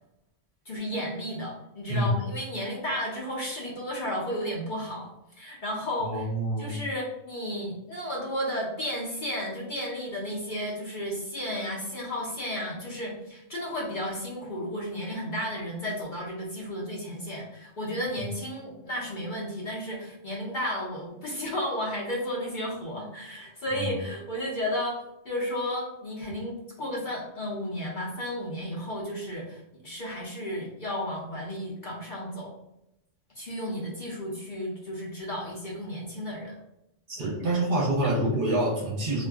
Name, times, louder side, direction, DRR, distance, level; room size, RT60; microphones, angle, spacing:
voice 1, 0.6-5.1 5.4-6.3 6.6-25.0 25.2-32.5 33.3-36.5 37.2-37.5 38.0-38.1, equal, 50° left, -4 dB, 0.8 m, -33 dB
voice 2, 6.0-6.8 23.8-24.0 37.1-39.3, right 1 dB, 50° right, -3 dB, 0.9 m, -27 dB
2.4 x 2.2 x 3.4 m, 0.86 s
omnidirectional pair, 1.2 m